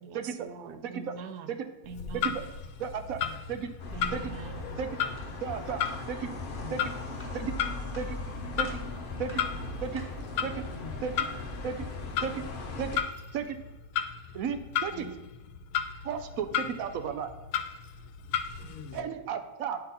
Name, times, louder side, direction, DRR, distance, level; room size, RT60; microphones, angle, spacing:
voice 1, 0.0-2.5 3.9-4.8, right 4 dB, 85° right, 8 dB, 1.3 m, -43 dB
voice 2, 0.8-1.1 1.5-1.6 2.1-2.3 2.8-3.2 3.5-3.7 4.1-4.3 4.8-4.9 5.4-5.8 6.1-6.3 6.7-6.9 7.3-7.5 7.9-8.2 8.6-8.8 9.2-9.4 9.8-10.0 10.4-10.6 11.0-11.3 11.6-11.9 12.2-12.4 12.8-13.0 13.3-13.6 14.3-15.1 16.0-17.3 18.9-19.8, right 7 dB, 70° right, 8 dB, 0.9 m, -34 dB
Clock, 1.8-19.0, left 8 dB, 85° left, 1.1 m, -36 dB
sound 1, 3.8-13.0, left 3 dB, 45° left, 0.7 m, -38 dB
sound 2, 5.2-5.3 5.9-6.1 6.5-6.7 7.2-7.5 7.9-8.2 8.6-8.9 9.3-9.6 10.0-10.2, equal, 10° left, 1.3 m, -50 dB
voice 3, 6.4-6.8 10.4-11.0 14.9-15.1 16.4-16.8 18.6-19.1, left 5 dB, 65° left, 6 dB, 1.1 m, -46 dB
10.5 x 3.9 x 4.1 m, 1.1 s
omnidirectional pair, 1.7 m